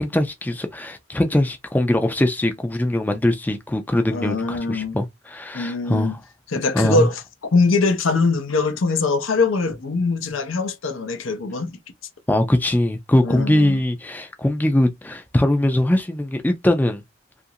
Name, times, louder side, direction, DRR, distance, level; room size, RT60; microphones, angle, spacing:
voice 1, 0.0-6.2 6.7-7.1 12.3-17.0, left 1 dB, 10° left, 0.4 m, -21 dB
voice 2, 4.1-5.0 5.5-6.2 6.5-7.2 7.5-11.7 13.2-13.8, left 3 dB, 80° left, 0.6 m, -22 dB
2.8 x 2.5 x 2.7 m
head